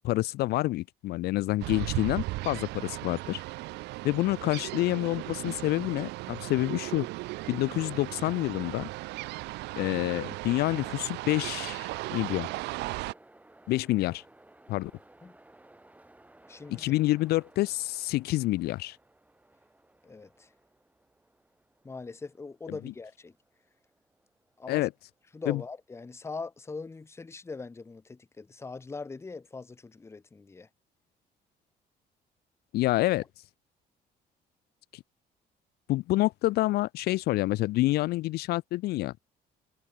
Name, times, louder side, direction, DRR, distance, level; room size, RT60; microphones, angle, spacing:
voice 1, 0.0-3.4 4.0-7.1 7.5-8.9 9.8-12.5 13.7-14.2 14.7-14.9 16.8-19.0 24.7-24.9 25.5-25.6 32.7-33.2 34.9-35.0 35.9-39.3, left 18 dB, 70° left, 0.4 m, -28 dB
sound 1, 1.6-13.1, right 20 dB, 90° right, 1.5 m, -37 dB
Train, 9.4-26.4, right 1 dB, 10° right, 3.7 m, -60 dB
voice 2, 16.5-16.9 20.0-20.5 21.8-23.3 24.6-24.9 25.3-30.7, left 4 dB, 15° left, 0.7 m, -41 dB
cardioid pair, 110°, 17 cm